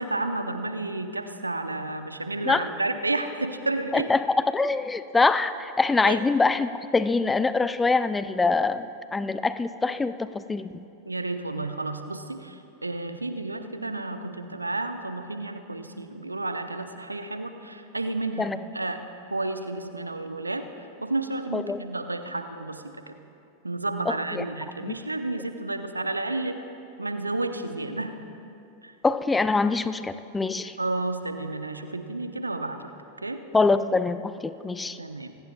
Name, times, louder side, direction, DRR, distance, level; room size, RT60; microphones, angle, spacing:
voice 1, 0.0-4.1 6.0-6.2 11.1-19.0 19.3-23.2 23.6-26.6 27.0-28.2 28.8-28.9 30.8-32.9 33.2-33.4 35.0-35.4, right 2 dB, 80° right, 8 dB, 0.9 m, -31 dB
voice 2, 3.9-8.9 9.1-10.7 18.4-18.6 21.5-21.8 24.1-24.4 29.0-30.8 33.5-35.0, left 3 dB, 10° left, 13 dB, 0.5 m, -24 dB
27.5 x 17.5 x 2.4 m, 2.7 s
figure-of-eight pair, 90°, 0 cm